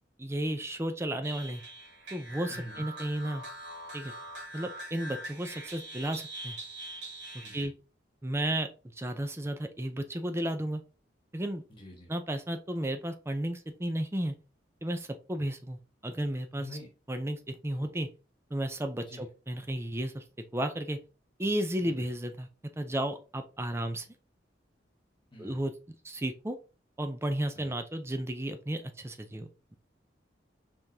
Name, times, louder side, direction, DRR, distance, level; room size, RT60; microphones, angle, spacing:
voice 1, 0.2-1.6 2.1-3.4 3.9-4.1 4.5-6.6 7.3-7.7 8.2-8.7 9.0-10.8 11.3-11.6 12.1-14.3 14.8-16.7 17.1-18.1 18.5-20.2 20.5-21.0 21.4-22.5 22.8-24.1 25.4-25.7 26.0-26.6 27.0-29.8, right 1 dB, 15° right, 7 dB, 0.6 m, -33 dB
sound 1, 1.2-7.7, right 1 dB, 70° right, 2.4 m, -43 dB
voice 2, 2.5-2.8 7.4-7.7 11.7-12.1 16.5-16.9 17.7-17.9 19.1-19.2 21.8-22.1 25.3-25.6 27.5-27.7, left 1 dB, 25° left, -1 dB, 1.4 m, -46 dB
4.9 x 3.6 x 2.7 m, 0.32 s
head